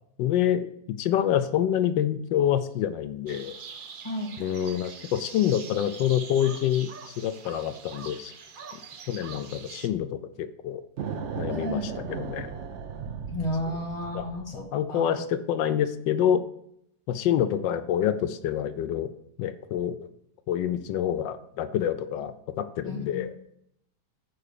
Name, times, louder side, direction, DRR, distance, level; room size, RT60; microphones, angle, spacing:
voice 1, 0.2-3.6 4.4-8.3 8.7-8.8 9.1-10.8 11.3-12.5 14.1-14.3 14.7-16.4 17.1-19.1 19.4-20.1 20.5-23.4, left 10 dB, 85° left, 11 dB, 1.2 m, -27 dB
sound 1, 3.3-9.9, right 5 dB, 85° right, 0.4 m, -43 dB
sound 2, 11.0-14.7, right 6 dB, 55° right, 0.9 m, -36 dB
voice 2, 11.5-11.9 13.3-15.2 22.9-23.3, left 1 dB, 20° left, 0 dB, 1.4 m, -33 dB
8.0 x 4.9 x 6.5 m, 0.73 s
omnidirectional pair, 1.9 m